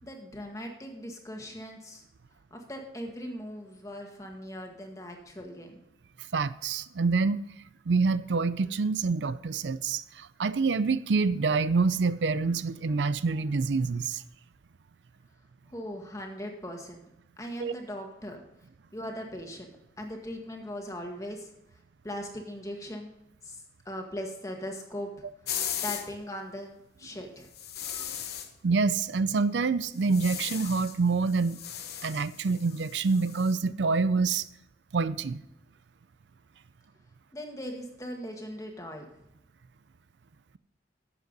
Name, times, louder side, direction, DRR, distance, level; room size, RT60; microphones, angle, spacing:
voice 1, 0.0-2.0 2.5-5.8 15.7-17.1 17.4-18.4 18.9-21.5 22.0-23.1 23.4-25.1 25.8-27.5 37.3-39.2, equal, 20° left, 1.8 m, -39 dB
voice 2, 6.3-7.4 7.9-14.2 17.6-17.7 27.9-28.0 28.6-31.6 32.0-34.4 34.9-35.4, right 4 dB, 85° right, 0.5 m, -26 dB
sound 1, 25.5-26.1 27.5-28.5 30.0-31.0 31.3-33.6, left 10 dB, 65° left, 1.1 m, -37 dB
11.5 x 8.1 x 4.0 m
head